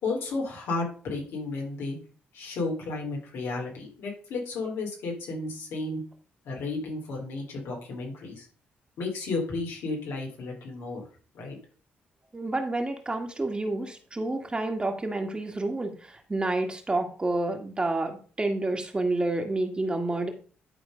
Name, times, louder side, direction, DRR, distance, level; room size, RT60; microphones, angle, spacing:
voice 1, 0.0-2.0 2.3-6.0 6.4-8.4 9.0-11.0 11.3-11.6, left 3 dB, 80° left, -1 dB, 4.0 m, -33 dB
voice 2, 12.3-20.3, right 2 dB, 25° right, 4 dB, 2.1 m, -29 dB
11.0 x 4.3 x 5.3 m, 0.40 s
cardioid pair, 70°, 4 cm